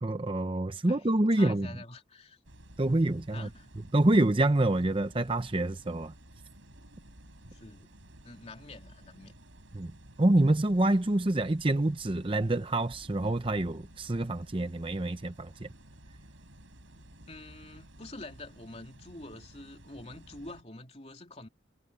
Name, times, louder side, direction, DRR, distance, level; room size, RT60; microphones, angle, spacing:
voice 1, 0.0-1.7 2.8-3.5 3.9-6.1 9.7-9.9 10.2-15.7, right 1 dB, 25° right, 0.7 m, -27 dB
voice 2, 0.8-2.4 3.3-3.7 7.5-7.9 8.2-9.3 10.1-10.2 16.9-21.5, left 2 dB, 35° left, 3.2 m, -47 dB
sound 1, 2.4-20.6, right 1 dB, 90° right, 6.1 m, -54 dB
head